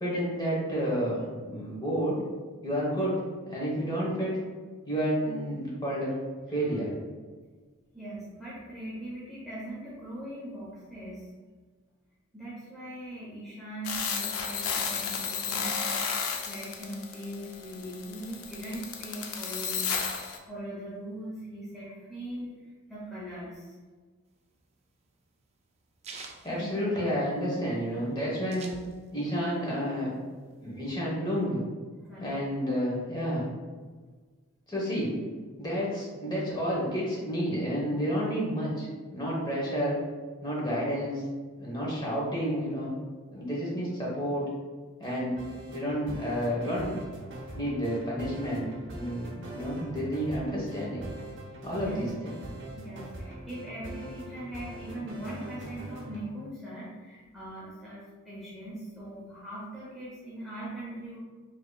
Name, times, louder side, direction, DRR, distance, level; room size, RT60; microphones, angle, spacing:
voice 1, 0.0-2.2 2.6-3.2 3.5-4.4 4.9-6.1 6.5-7.0 26.4-28.7 29.1-30.1 30.6-31.6 32.2-33.4 34.7-35.2 35.6-40.0 40.4-41.2 41.6-42.9 43.3-44.5 45.0-45.4 45.7-47.0 47.5-51.1 51.6-52.7, equal, 20° left, -5 dB, 1.0 m, -30 dB
voice 2, 7.9-11.3 12.3-16.0 16.5-23.7 26.2-26.7 32.0-32.3 51.7-52.1 52.7-61.2, right 1 dB, ahead, -9 dB, 0.7 m, -40 dB
sound 1, 13.8-20.4, left 6 dB, 80° left, 0.5 m, -33 dB
sound 2, 24.3-27.5 27.8-27.9 28.1-29.4 29.7-30.8, right 4 dB, 30° right, 0.3 m, -47 dB
sound 3, 45.0-56.3, right 1 dB, 55° right, 0.8 m, -42 dB
4.9 x 2.9 x 2.3 m, 1.4 s
head